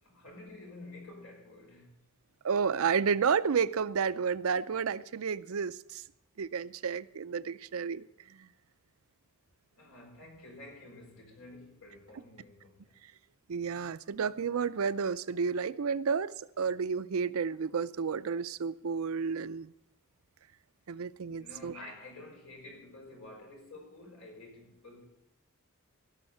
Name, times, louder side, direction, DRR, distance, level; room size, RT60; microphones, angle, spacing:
voice 1, 0.0-2.0 9.8-12.8 21.4-25.0, left 2 dB, 80° left, 5.4 m, -50 dB
voice 2, 2.4-6.0 6.4-8.0 8.4-8.5 13.5-19.7 20.9-21.8, right 6 dB, 80° right, 0.5 m, -31 dB
17.0 x 6.4 x 7.9 m
head